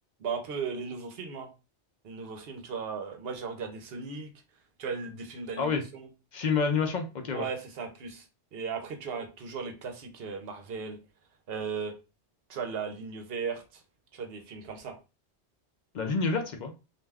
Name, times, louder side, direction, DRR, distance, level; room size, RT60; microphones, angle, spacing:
voice 1, 0.2-1.5 2.0-4.3 4.8-6.1 7.3-8.3 8.5-11.0 11.5-11.9 12.5-13.8 14.1-15.0, right 5 dB, 65° right, 5 dB, 0.8 m, -36 dB
voice 2, 6.3-7.5 15.9-16.7, left 5 dB, 55° left, 5 dB, 0.5 m, -28 dB
2.5 x 2.2 x 3.3 m, 0.29 s
omnidirectional pair, 1.2 m